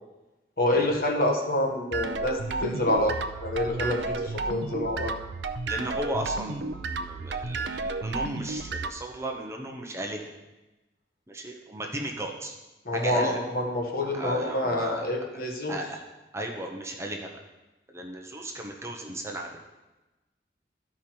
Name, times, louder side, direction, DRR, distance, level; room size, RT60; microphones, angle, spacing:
voice 1, 0.6-5.1 12.8-15.8, left 1 dB, 55° left, 1 dB, 1.4 m, -27 dB
sound 1, 1.9-8.9, right 3 dB, 75° right, 0.5 m, -32 dB
voice 2, 5.7-10.3 11.3-12.6 12.9-13.4 14.1-15.1 15.7-16.0 16.3-17.3 17.9-19.6, right 1 dB, 15° right, 1 dB, 0.8 m, -35 dB
12.5 x 5.0 x 4.4 m, 1.1 s
head